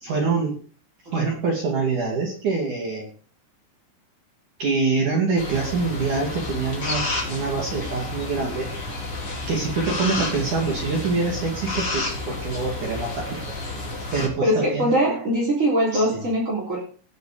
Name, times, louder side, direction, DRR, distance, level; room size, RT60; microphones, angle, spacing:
voice 1, 0.0-0.6 1.1-3.1 4.6-8.7 9.5-13.4 14.1-14.9 15.9-16.2, right 4 dB, 50° right, 0 dB, 3.4 m, -25 dB
sound 1, 5.4-14.3, left 2 dB, 30° left, 5.0 m, -30 dB
voice 2, 14.4-16.8, equal, 20° right, -5 dB, 3.3 m, -22 dB
19.0 x 8.0 x 5.1 m, 0.41 s
omnidirectional pair, 5.2 m